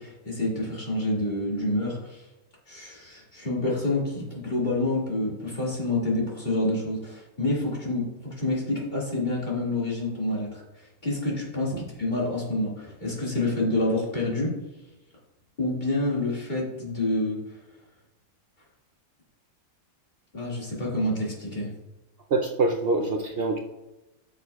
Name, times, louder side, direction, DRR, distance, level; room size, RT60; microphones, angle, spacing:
voice 1, 0.0-2.2 2.7-10.6 11.0-14.5 15.6-17.4 20.3-21.7, left 2 dB, 30° left, -5 dB, 2.2 m, -28 dB
voice 2, 22.3-23.6, right 3 dB, 85° right, 2 dB, 0.5 m, -25 dB
13.0 x 6.5 x 2.3 m, 1.0 s
omnidirectional pair, 1.7 m